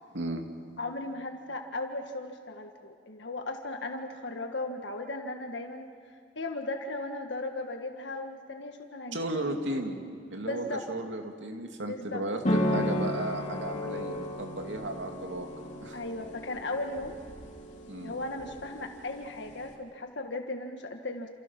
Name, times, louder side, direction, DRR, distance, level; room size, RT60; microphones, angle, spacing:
voice 1, 0.8-5.9 6.3-9.6 10.5-10.8 11.9-12.2 15.9-17.2 18.0-21.3, left 2 dB, 75° left, 4 dB, 1.6 m, -36 dB
voice 2, 9.1-10.0 10.3-15.5 15.8-16.0 17.9-18.1, right 1 dB, 85° right, 3 dB, 2.7 m, -34 dB
sound 1, 12.4-19.7, left 1 dB, 40° left, 3.2 m, -34 dB
28.5 x 28.5 x 6.0 m, 2.4 s
head